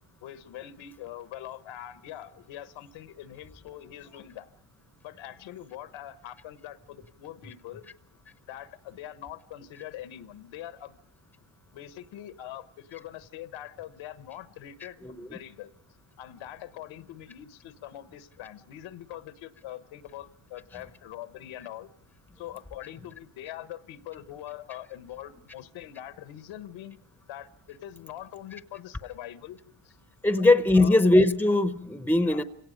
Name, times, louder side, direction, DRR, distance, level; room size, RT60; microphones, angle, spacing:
voice 1, 0.2-4.5 5.0-7.9 8.5-11.0 11.7-15.7 16.2-21.9 22.4-27.0 27.3-29.6 29.8-29.9 30.4-30.5 30.8-31.0 32.1-32.4, left 12 dB, 80° left, 1.3 m, -43 dB
voice 2, 15.0-15.4 30.2-32.4, left 2 dB, 5° left, 0.8 m, -21 dB
28.5 x 17.5 x 5.2 m
cardioid pair, 105°, 45 cm